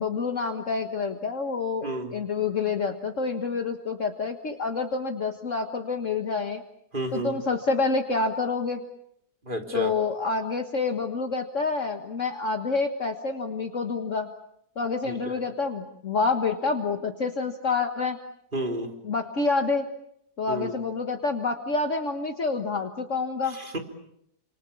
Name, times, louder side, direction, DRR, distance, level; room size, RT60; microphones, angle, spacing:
voice 1, 0.0-6.6 7.1-8.8 9.7-14.3 14.8-18.2 19.1-19.9 20.4-23.6, left 4 dB, 50° left, 5 dB, 1.9 m, -28 dB
voice 2, 1.8-2.2 6.9-7.4 9.4-9.9 15.1-15.4 18.5-18.9 20.5-20.8 23.5-23.8, right 1 dB, 30° right, 3 dB, 3.6 m, -31 dB
29.5 x 27.0 x 7.1 m, 0.75 s
omnidirectional pair, 1.8 m